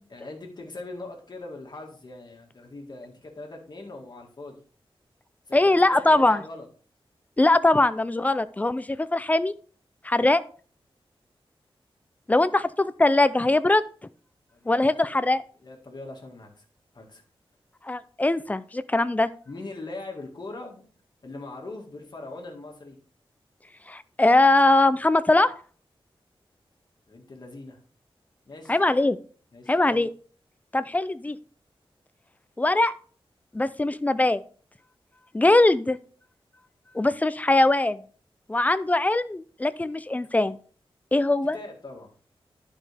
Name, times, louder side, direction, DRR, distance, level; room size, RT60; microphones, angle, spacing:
voice 1, 0.1-4.6 5.5-6.7 14.5-15.3 15.6-16.6 16.9-17.2 19.4-20.9 21.2-23.0 27.1-27.8 28.5-28.8 29.5-30.1 41.5-42.1, left 2 dB, 50° left, 1 dB, 2.0 m, -41 dB
voice 2, 5.5-6.4 7.4-9.5 10.0-10.4 12.3-13.8 14.7-15.4 17.8-19.3 23.9-25.5 28.7-29.2 29.7-30.1 30.7-31.4 32.6-32.9 33.5-34.4 35.3-36.0 36.9-38.0 38.5-40.6 41.1-41.6, left 2 dB, 15° left, 14 dB, 0.4 m, -21 dB
11.5 x 5.4 x 3.4 m, 0.43 s
wide cardioid pair, 115°, 10 cm